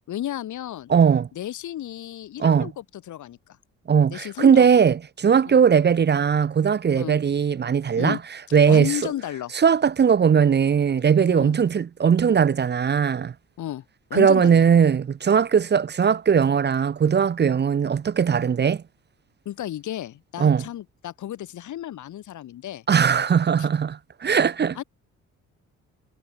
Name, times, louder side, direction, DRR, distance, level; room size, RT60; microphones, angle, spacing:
voice 1, 0.1-0.9 1.3-3.6 4.1-4.8 5.5-5.6 7.0-7.2 8.0-8.2 8.5-9.5 11.3-11.6 13.6-13.8 14.1-14.7 19.4-22.8 23.6-23.7 24.8-24.9, left 12 dB, 75° left, 4.2 m, -33 dB
voice 2, 0.9-1.3 2.4-2.7 3.9-8.2 8.5-9.0 9.5-13.3 14.1-18.8 20.4-20.6 22.9-24.8, right 7 dB, 35° right, 0.8 m, -19 dB
cardioid pair, 90°, 30 cm